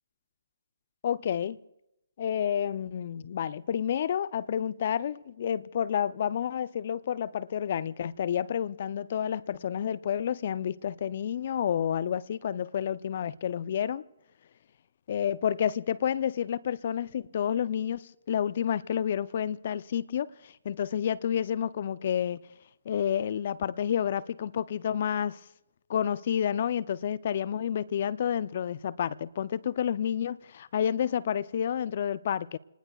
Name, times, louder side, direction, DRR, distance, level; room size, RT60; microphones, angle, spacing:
voice 1, 1.0-1.6 2.2-14.0 15.1-22.4 22.9-25.4 25.9-32.6, left 9 dB, 50° left, 0.5 m, -30 dB
29.0 x 19.5 x 2.3 m
figure-of-eight pair, 135°, 0 cm